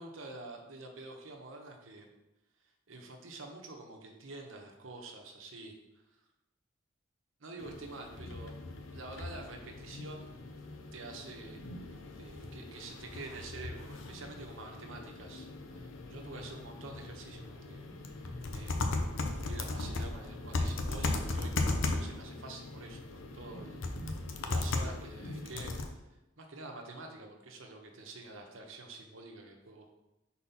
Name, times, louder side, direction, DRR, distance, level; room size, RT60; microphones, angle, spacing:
voice 1, 0.0-2.1 2.9-5.7 7.4-8.6 8.9-10.3 10.9-11.6 11.9-15.4 15.7-17.9 18.1-18.8 19.3-26.0 26.4-29.9, right 2 dB, 90° right, 2 dB, 1.0 m, -47 dB
sound 1, 7.6-25.9, left 2 dB, 85° left, 0.7 m, -38 dB
4.2 x 4.2 x 5.6 m, 0.97 s
head